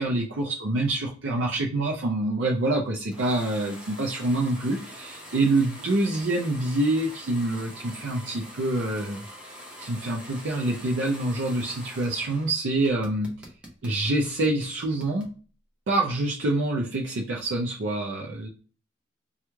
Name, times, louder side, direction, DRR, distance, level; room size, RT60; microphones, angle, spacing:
voice 1, 0.0-9.2 9.8-13.3 13.8-15.3 15.9-18.5, right 2 dB, 70° right, -1 dB, 0.5 m, -26 dB
sound 1, 3.1-12.5 12.8-15.3, equal, 5° right, 0.7 m, -44 dB
3.0 x 2.3 x 3.2 m, 0.39 s
head